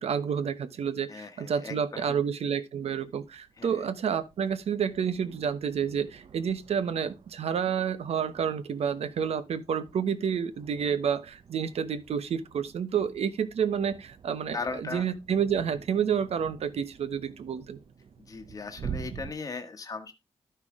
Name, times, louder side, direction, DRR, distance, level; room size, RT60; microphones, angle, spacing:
voice 1, 0.0-17.8, right 7 dB, 80° right, 1.1 m, -29 dB
voice 2, 1.1-2.2 3.6-3.8 14.5-15.1 18.3-20.1, left 4 dB, 35° left, 1.2 m, -38 dB
sound 1, 3.0-19.3, right 7 dB, 60° right, 0.8 m, -47 dB
12.5 x 5.8 x 3.6 m
wide cardioid pair, 155°, 11 cm